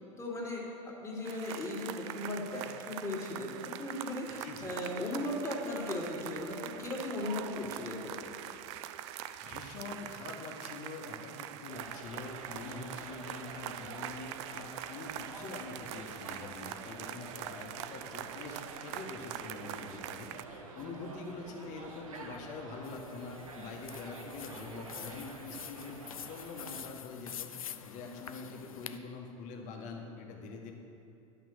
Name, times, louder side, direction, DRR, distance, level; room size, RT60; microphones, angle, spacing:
voice 1, 0.2-8.4, left 1 dB, 15° left, -3 dB, 2.4 m, -37 dB
sound 1, 1.2-20.4, right 12 dB, 55° right, 0.4 m, -44 dB
voice 2, 4.4-4.7 9.4-27.5 27.8-30.7, left 3 dB, 45° left, 2 dB, 1.6 m, -45 dB
sound 2, 11.7-26.8, right 3 dB, 80° right, 1.2 m, -48 dB
sound 3, 22.8-29.0, left 9 dB, 80° left, 0.5 m, -46 dB
11.5 x 5.9 x 6.4 m, 2.7 s
hypercardioid pair, 85°, 17 cm